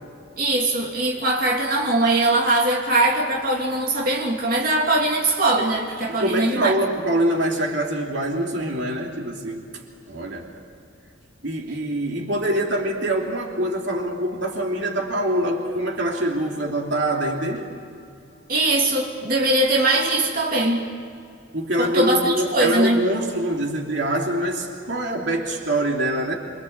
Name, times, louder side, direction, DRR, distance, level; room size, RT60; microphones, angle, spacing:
voice 1, 0.4-6.7 18.5-20.8 21.8-23.0, right 2 dB, 45° right, -2 dB, 3.0 m, -21 dB
voice 2, 6.2-9.6 10.1-10.5 11.4-17.7 21.5-26.3, right 1 dB, 60° right, 0 dB, 3.1 m, -24 dB
29.0 x 24.5 x 8.2 m, 2.4 s
head